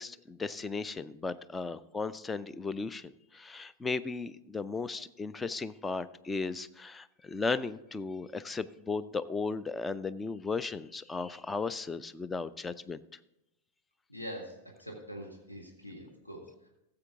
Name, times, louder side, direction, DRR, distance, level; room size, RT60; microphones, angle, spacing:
voice 1, 0.0-13.0, left 4 dB, 15° left, 15 dB, 0.4 m, -36 dB
voice 2, 14.1-16.7, equal, 85° left, 0 dB, 1.7 m, -44 dB
14.5 x 7.6 x 3.6 m, 0.86 s
figure-of-eight pair, 90°, 0 cm